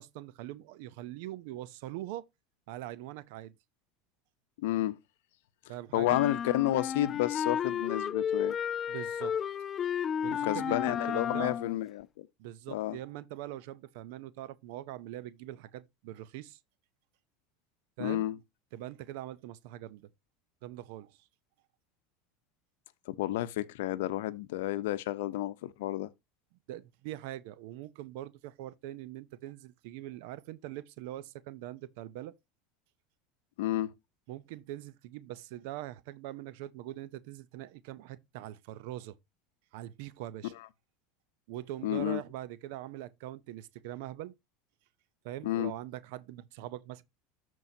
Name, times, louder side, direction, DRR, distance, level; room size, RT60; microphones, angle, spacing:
voice 1, 0.0-2.3 2.7-3.5 5.7-6.2 8.9-9.4 10.2-11.5 12.4-16.6 18.0-18.3 18.7-20.1 20.6-21.2 26.7-32.3 34.3-39.1 39.7-40.5 41.5-44.3 45.2-47.0, right 14 dB, 70° right, 0.6 m, -42 dB
voice 2, 4.6-5.0 5.9-8.6 10.3-12.3 12.7-13.0 18.0-18.4 23.1-26.1 33.6-33.9 40.6-40.7 41.8-42.2 45.4-45.7, left 15 dB, 80° left, 0.7 m, -31 dB
sound 1, 6.0-11.8, left 8 dB, 30° left, 0.3 m, -32 dB
13.5 x 4.6 x 2.7 m
supercardioid pair, 130°, 0 cm